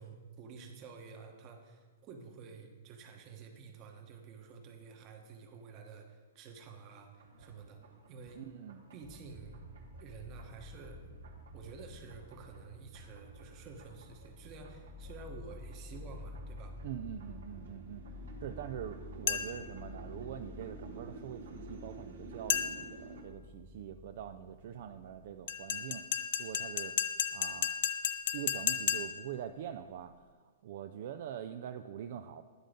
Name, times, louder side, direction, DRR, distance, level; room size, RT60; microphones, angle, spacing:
voice 1, 0.0-7.8 8.1-8.4 8.9-9.6 10.0-11.0 11.5-16.8, right 5 dB, 35° right, 4 dB, 1.0 m, -50 dB
sound 1, 7.2-23.2, right 3 dB, 85° right, 1.2 m, -53 dB
voice 2, 8.3-8.9 16.8-18.1 18.4-26.1 26.4-26.9 27.3-27.7 28.3-30.1 30.6-32.4, right 9 dB, 60° right, 7 dB, 0.3 m, -44 dB
sound 2, 9.0-25.5, left 1 dB, 5° right, 0.9 m, -50 dB
sound 3, 19.3-19.7 22.5-23.0 25.5-29.3, left 10 dB, 60° left, 0.4 m, -34 dB
9.6 x 3.8 x 5.1 m, 1.5 s
hypercardioid pair, 135°, 0 cm